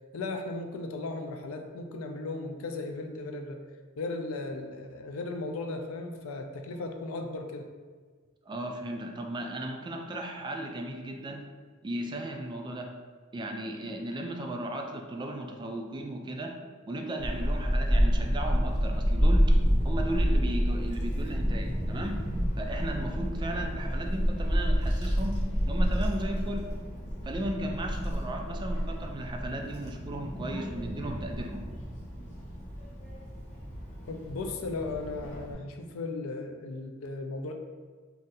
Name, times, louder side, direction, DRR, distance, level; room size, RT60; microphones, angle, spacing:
voice 1, 0.1-3.6 4.0-7.7 34.1-37.5, left 3 dB, 75° left, 5 dB, 0.4 m, -36 dB
voice 2, 8.5-11.5 11.8-12.9 13.3-16.5 16.9-19.5 19.8-22.2 22.6-25.4 25.6-26.7 27.2-31.6, right 1 dB, 20° right, 2 dB, 0.3 m, -36 dB
Child speech kid speaking / Wind, 17.2-35.5, equal, 35° left, 0.8 m, -29 dB
2.6 x 2.5 x 3.9 m, 1.5 s
head